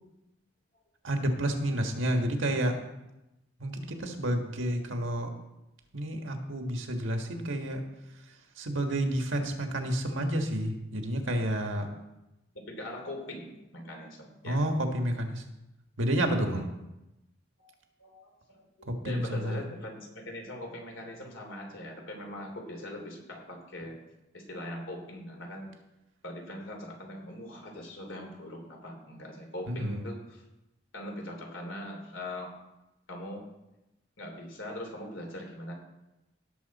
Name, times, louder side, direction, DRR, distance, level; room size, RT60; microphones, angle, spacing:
voice 1, 1.0-2.7 3.6-5.3 5.9-7.8 8.6-11.9 14.4-15.4 16.0-16.6 18.9-19.6 29.7-30.0, right 1 dB, 85° right, 4 dB, 1.6 m, -30 dB
voice 2, 12.7-14.6 16.4-16.7 17.6-17.7 18.0-24.0 24.3-25.7 26.2-30.4 30.9-32.5 33.1-33.5 34.2-35.7, left 1 dB, 85° left, 1 dB, 3.1 m, -41 dB
17.0 x 6.9 x 4.2 m, 0.95 s
head